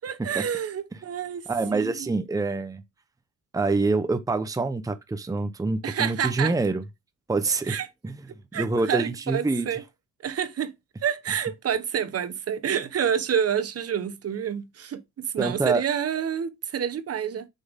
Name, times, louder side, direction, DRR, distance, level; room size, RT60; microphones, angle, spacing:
voice 1, 0.0-1.4 1.7-2.1 5.8-6.5 7.5-7.9 8.5-9.8 10.2-10.7 11.0-17.5, right 8 dB, 50° right, 1.2 m, -28 dB
voice 2, 1.5-2.8 3.5-6.8 7.3-7.8 8.0-8.2 8.5-9.8 15.4-15.8, right 3 dB, 10° right, 0.8 m, -26 dB
7.7 x 5.5 x 3.6 m
cardioid pair, 90°, 30 cm